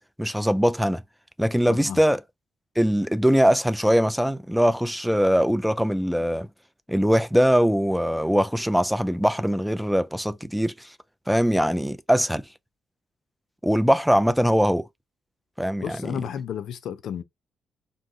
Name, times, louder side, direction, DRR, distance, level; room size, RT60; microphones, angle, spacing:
voice 1, 0.2-1.0 1.4-2.2 2.8-6.5 6.9-10.9 11.3-12.4 13.6-14.9 15.6-16.0, equal, ahead, 0.3 m, -21 dB
voice 2, 1.7-2.0 15.8-17.2, left 8 dB, 75° left, 0.4 m, -32 dB
2.6 x 2.0 x 3.6 m
supercardioid pair, 70°, 0 cm